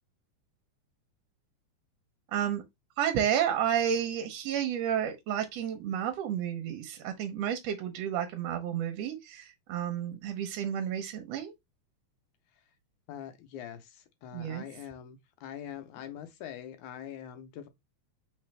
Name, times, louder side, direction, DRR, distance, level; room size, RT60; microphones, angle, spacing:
voice 1, 2.3-2.6 3.0-11.5 14.3-14.6, right 9 dB, 70° right, 1.7 m, -31 dB
voice 2, 13.1-17.7, left 10 dB, 80° left, 2.1 m, -43 dB
4.0 x 3.9 x 3.2 m
omnidirectional pair, 3.4 m